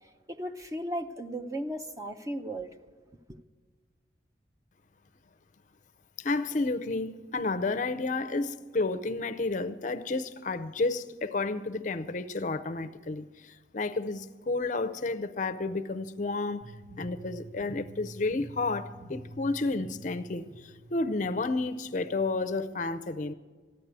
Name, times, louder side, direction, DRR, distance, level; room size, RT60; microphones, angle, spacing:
voice 1, 0.0-2.7 3.3-3.4, right 1 dB, 20° right, 0.6 m, -36 dB
voice 2, 6.2-16.6 17.0-23.3, left 3 dB, 45° left, 0.5 m, -31 dB
sound 1, 16.6-22.6, right 1 dB, 45° right, 1.5 m, -48 dB
14.0 x 9.9 x 8.1 m
head